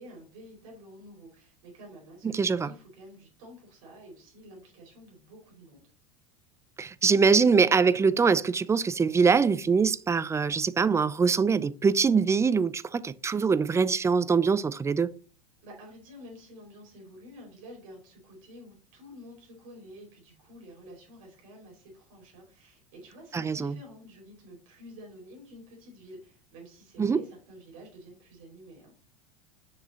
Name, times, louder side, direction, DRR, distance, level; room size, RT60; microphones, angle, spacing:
voice 1, 0.0-5.8 15.6-29.0, equal, 65° right, 4.5 m, -49 dB
voice 2, 2.3-2.7 6.8-15.1 23.3-23.8 27.0-27.2, right 5 dB, 15° right, 0.5 m, -23 dB
7.2 x 6.0 x 4.1 m
hypercardioid pair, 85°, 18 cm